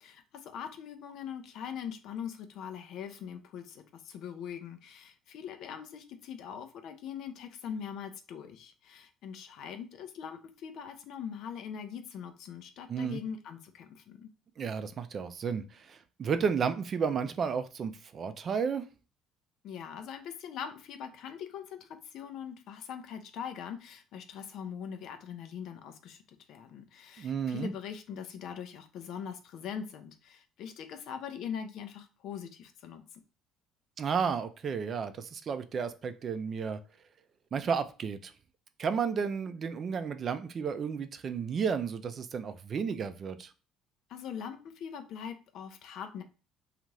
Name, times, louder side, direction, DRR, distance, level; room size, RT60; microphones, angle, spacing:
voice 1, 0.0-14.3 19.6-33.0 44.1-46.2, left 8 dB, 65° left, 0.5 m, -42 dB
voice 2, 12.9-13.2 14.6-18.8 27.2-27.7 34.0-36.8 37.5-38.3 38.8-43.5, right 6 dB, 45° right, 0.4 m, -32 dB
2.5 x 2.4 x 3.1 m
hypercardioid pair, 60°, 0 cm